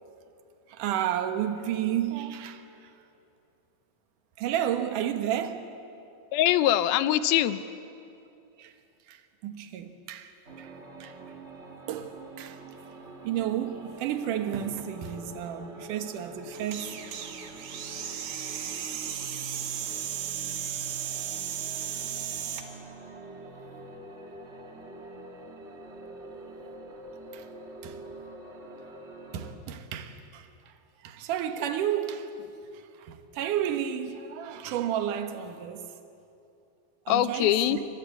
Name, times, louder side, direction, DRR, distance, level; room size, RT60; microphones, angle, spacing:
voice 1, 0.7-2.9 4.4-5.7 8.6-8.7 9.1-11.2 11.9-12.6 13.2-17.0 20.7-20.8 27.3-27.5 27.8-28.0 29.3-30.7 31.0-32.4 32.7-35.9 37.1-37.8, right 10 dB, 65° right, 2.8 m, -32 dB
voice 2, 6.3-7.6 37.1-37.8, left 12 dB, 85° left, 2.7 m, -23 dB
sound 1, 10.5-29.5, right 2 dB, 40° right, 0.9 m, -45 dB
sound 2, 16.5-22.7, right 9 dB, 80° right, 3.5 m, -35 dB
28.0 x 24.5 x 8.4 m
omnidirectional pair, 4.3 m